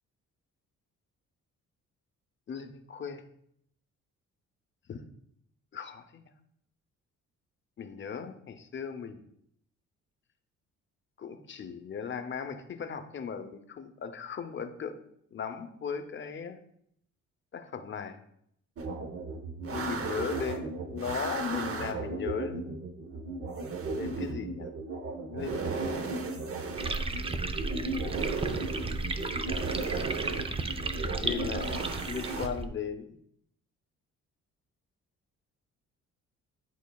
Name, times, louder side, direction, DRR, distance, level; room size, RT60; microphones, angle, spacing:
voice 1, 2.5-3.2 4.9-5.0 5.7-6.3 7.8-9.3 11.2-15.0 15.3-16.6 17.5-18.2 19.7-22.7 23.9-24.7 25.3-26.1 27.7-28.2 30.3-33.2, left 6 dB, 40° left, 8 dB, 0.7 m, -38 dB
sound 1, 18.8-32.5, right 3 dB, 50° right, 0.9 m, -35 dB
sound 2, 26.8-32.7, right 3 dB, 20° right, 0.5 m, -34 dB
10.5 x 4.0 x 2.3 m, 0.72 s
cardioid pair, 90°, 30 cm